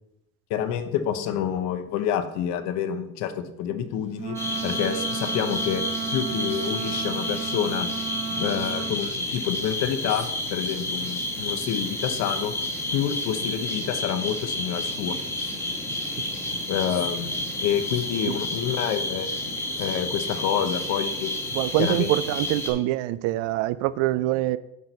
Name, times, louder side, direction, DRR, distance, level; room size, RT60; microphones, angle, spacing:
voice 1, 0.5-5.8 6.1-7.9 8.3-12.5 12.9-15.2 16.7-21.3 21.8-22.1, left 9 dB, 65° left, 10 dB, 0.9 m, -28 dB
Wind instrument woodwind instrument, 4.1-9.0, right 8 dB, 20° right, 0.7 m, -33 dB
sound 1, 4.3-22.7, left 1 dB, 10° left, 1.2 m, -30 dB
voice 2, 21.6-24.6, right 16 dB, 75° right, 17 dB, 0.5 m, -24 dB
8.4 x 4.5 x 5.3 m, 0.85 s
cardioid pair, 150°, 29 cm